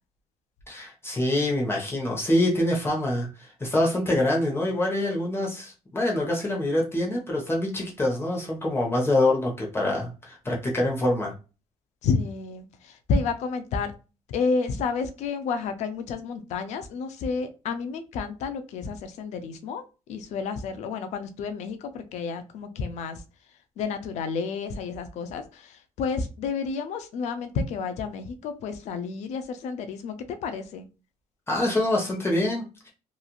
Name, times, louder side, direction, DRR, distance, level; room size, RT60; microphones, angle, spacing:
voice 1, 0.7-11.3 31.5-32.9, left 1 dB, 20° left, -2 dB, 0.9 m, -25 dB
voice 2, 12.0-13.9 14.3-23.2 23.8-30.9, left 5 dB, 80° left, 9 dB, 0.5 m, -30 dB
3.0 x 2.4 x 2.4 m, 0.31 s
cardioid pair, 110°, 12 cm